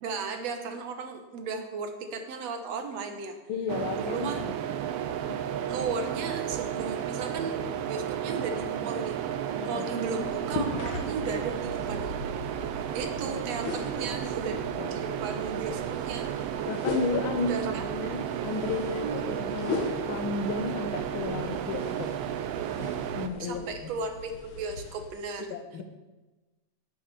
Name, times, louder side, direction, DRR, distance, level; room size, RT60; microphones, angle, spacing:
voice 1, 0.0-3.4 4.0-4.5 5.7-7.6 7.9-9.2 9.6-12.2 12.9-14.6 14.9-16.6 17.5-17.8 19.0-19.4 23.4-25.6, right 4 dB, 65° right, 6 dB, 2.1 m, -35 dB
voice 2, 3.5-4.5 5.2-5.4 9.6-9.9 14.8-15.0 15.5-15.6 16.7-22.1 23.1-23.9 25.5-25.8, left 4 dB, 65° left, 8 dB, 1.4 m, -33 dB
sound 1, 3.7-23.3, right 10 dB, 80° right, 1.4 m, -33 dB
sound 2, 10.2-25.1, left 2 dB, 50° left, 1.8 m, -39 dB
10.5 x 9.2 x 6.8 m, 1.1 s
omnidirectional pair, 3.6 m